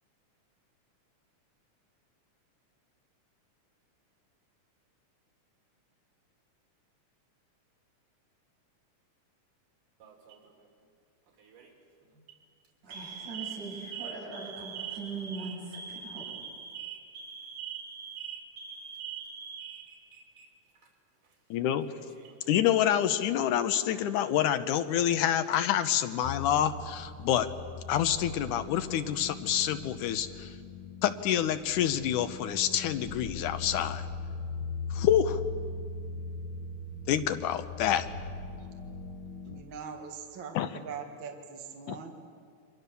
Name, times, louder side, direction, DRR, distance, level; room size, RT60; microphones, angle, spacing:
Alarm, 10.0-10.5 11.4-11.7 12.1-12.3 12.9-20.5 20.8-20.9 21.8-22.5, right 7 dB, 85° right, 4.5 m, -42 dB
voice 1, 12.8-16.3, right 3 dB, 70° right, -4 dB, 8.7 m, -41 dB
voice 2, 21.5-21.9 22.5-27.5 27.9-30.6 31.0-34.0 34.9-35.4 37.1-38.1 40.6-40.7 41.9-42.0, left 10 dB, 80° left, 10 dB, 2.4 m, -27 dB
sound 1, 26.2-39.6, left 3 dB, 50° left, 2.0 m, -40 dB
voice 3, 39.4-42.1, right 6 dB, 45° right, 3 dB, 2.1 m, -42 dB
29.5 x 24.0 x 6.9 m, 2.2 s
omnidirectional pair, 3.6 m